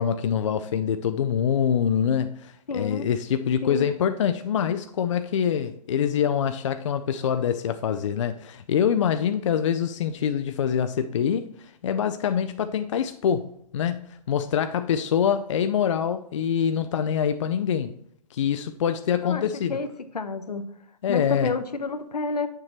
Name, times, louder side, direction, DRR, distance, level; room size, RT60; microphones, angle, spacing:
voice 1, 0.0-17.9 18.3-19.8 21.0-21.5, left 8 dB, 50° left, 0.4 m, -25 dB
voice 2, 2.7-3.0 3.6-3.9 19.2-19.9 20.1-20.6 21.1-22.5, left 4 dB, 75° left, 0.8 m, -29 dB
8.3 x 6.7 x 3.0 m
figure-of-eight pair, 130°, 20 cm